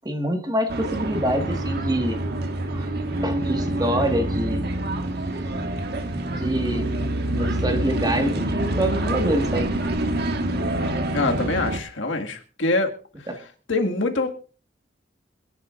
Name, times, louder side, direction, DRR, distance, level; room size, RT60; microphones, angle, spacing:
voice 1, 0.0-2.2 2.7-2.9 3.2-4.6 6.3-6.9 7.3-9.7 13.3-13.4, right 1 dB, 20° right, 5 dB, 1.7 m, -26 dB
Gong Garden - Planet Gongs Atmos, 0.7-11.8, right 1 dB, 60° right, 1.5 m, -26 dB
voice 2, 11.1-12.9 13.7-14.3, left 2 dB, 85° left, 4 dB, 1.9 m, -24 dB
27.0 x 10.5 x 2.5 m, 0.40 s
head